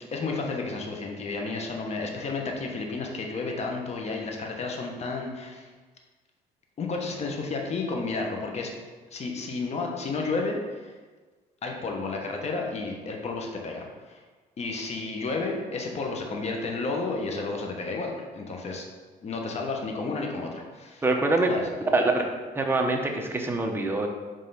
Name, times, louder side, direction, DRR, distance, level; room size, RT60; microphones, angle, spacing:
voice 1, 0.1-5.7 6.8-8.7 9.1-10.9 11.6-14.2 14.6-18.8 19.2-21.0 21.5-21.9, left 3 dB, 40° left, 1 dB, 1.1 m, -32 dB
voice 2, 21.0-21.5 21.9-22.2 22.5-24.1, right 2 dB, 15° right, 2 dB, 0.8 m, -24 dB
5.5 x 3.6 x 5.6 m, 1.4 s
cardioid pair, 110°, 17 cm